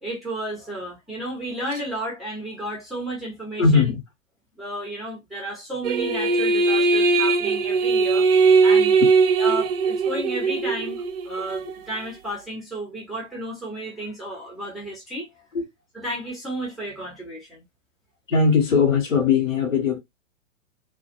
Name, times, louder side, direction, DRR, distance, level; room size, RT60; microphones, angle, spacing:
voice 1, 0.0-3.9 4.6-8.3 8.6-9.0 9.4-11.0 11.2-15.3 15.9-17.6, right 1 dB, ahead, 0.5 m, -32 dB
voice 2, 3.6-4.0 8.5-8.6 9.0-9.1 15.5-15.7 18.3-20.0, left 5 dB, 75° left, 1.0 m, -20 dB
sound 1, 5.8-11.7, right 4 dB, 50° right, 0.5 m, -20 dB
2.2 x 2.1 x 2.8 m
figure-of-eight pair, 105°, 39 cm